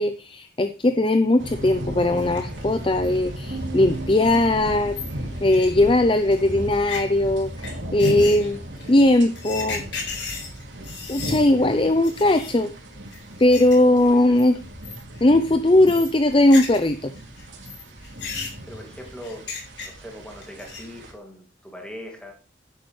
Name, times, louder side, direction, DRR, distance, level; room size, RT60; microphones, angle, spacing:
voice 1, 0.0-8.6 8.9-9.8 11.1-12.7 13.4-14.6 15.2-17.1, left 1 dB, 30° left, 9 dB, 0.6 m, -19 dB
sound 1, 1.4-21.1, equal, 90° right, 2.7 m, -36 dB
sound 2, 2.2-2.6 3.0-3.1 3.6-3.7 3.9-4.0 4.3-4.4 4.6-6.2 6.7-7.0 7.6-7.7 8.0-11.4 11.7-11.8 12.0-12.6 13.1-13.7 14.0-14.4 14.8-15.2 15.5-16.9 17.2-20.1 20.4-21.0, left 5 dB, 75° left, 3.9 m, -35 dB
Piano, 3.5-6.9, right 6 dB, 35° right, 1.6 m, -42 dB
voice 2, 18.7-22.3, equal, 5° left, 1 dB, 2.4 m, -40 dB
10.5 x 10.5 x 3.2 m, 0.34 s
head